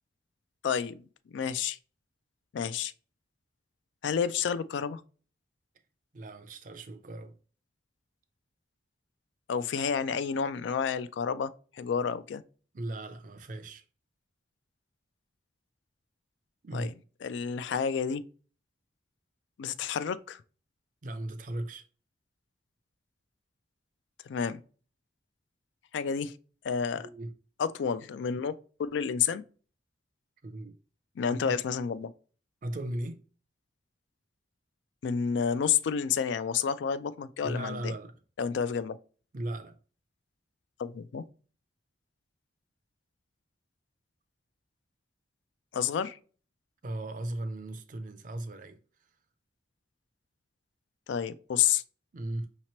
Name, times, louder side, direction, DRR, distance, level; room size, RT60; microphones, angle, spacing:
voice 1, 0.6-1.8 2.5-2.9 4.0-5.0 9.5-11.5 11.8-12.4 16.7-16.9 17.2-18.2 19.6-20.4 24.3-24.6 25.9-26.3 26.6-27.1 27.6-28.5 28.8-29.4 31.2-32.1 35.0-37.9 38.4-39.0 40.8-41.2 45.7-46.2 51.1-51.8, left 7 dB, 75° left, 0.3 m, -30 dB
voice 2, 6.1-7.4 12.7-13.8 16.6-16.9 21.0-21.9 27.0-27.3 30.4-30.8 31.3-31.6 32.6-33.2 37.4-38.2 39.3-39.8 46.8-48.8 52.1-52.5, right 1 dB, 45° right, 0.5 m, -37 dB
5.7 x 2.9 x 3.0 m
head